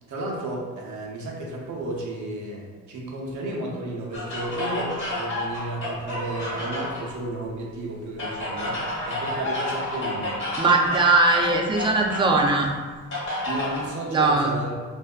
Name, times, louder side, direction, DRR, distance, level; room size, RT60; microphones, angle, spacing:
voice 1, 0.1-10.4 13.5-14.8, right 1 dB, 70° right, -2 dB, 0.7 m, -33 dB
sound 1, 4.1-7.1 8.2-12.3 13.1-13.9, left 1 dB, 40° left, 0.9 m, -30 dB
voice 2, 10.6-12.7 14.1-14.5, right 3 dB, 15° right, 0 dB, 0.3 m, -20 dB
2.6 x 2.1 x 2.3 m, 1.4 s
cardioid pair, 90°, 30 cm